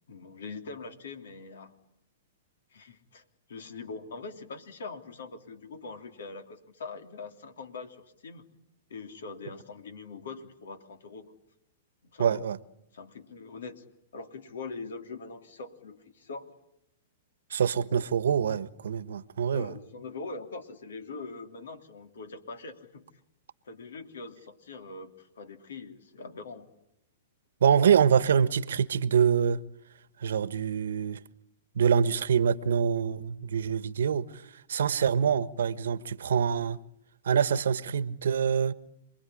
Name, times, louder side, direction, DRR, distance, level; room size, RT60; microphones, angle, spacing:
voice 1, 0.1-1.7 2.7-8.4 8.9-11.3 12.0-12.4 12.9-13.8 14.1-16.5 17.9-18.0 19.5-23.1 23.6-26.7, left 4 dB, 80° left, 3.1 m, -43 dB
voice 2, 12.2-12.6 17.5-19.7 27.6-29.6 30.2-31.2 31.7-34.4 34.7-36.8 37.2-38.7, right 7 dB, 80° right, 1.2 m, -25 dB
27.5 x 21.5 x 10.0 m
hypercardioid pair, 130°, 0 cm